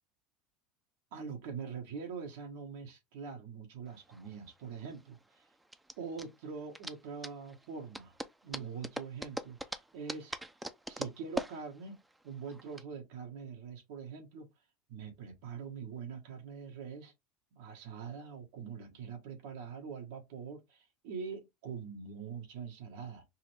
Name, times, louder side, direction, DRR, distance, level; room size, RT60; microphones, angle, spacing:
voice 1, 1.1-5.5 6.0-8.1 8.4-10.4 10.9-14.5 14.9-17.1 17.5-23.2, right 6 dB, 75° right, 1.6 m, -44 dB
sound 1, 3.9-12.8, right 1 dB, 10° right, 0.6 m, -43 dB
5.5 x 2.1 x 3.4 m
hypercardioid pair, 90°, 0 cm